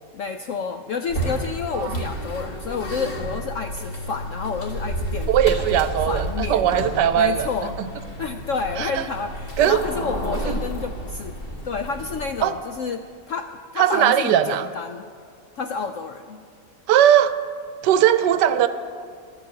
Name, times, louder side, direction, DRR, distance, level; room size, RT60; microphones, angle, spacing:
voice 1, 0.1-6.7 7.2-7.7 8.2-11.4 11.6-15.1 15.6-16.4, left 5 dB, 75° left, 7 dB, 0.7 m, -30 dB
sound 1, 1.1-12.5, right 1 dB, 35° left, 1.7 m, -31 dB
voice 2, 5.3-7.5 8.8-9.0 9.6-9.8 10.4-10.5 12.4-12.5 13.8-14.7 16.9-17.3 17.8-18.7, right 10 dB, 80° right, 12 dB, 1.2 m, -19 dB
11.5 x 8.3 x 8.5 m, 2.2 s
omnidirectional pair, 1.9 m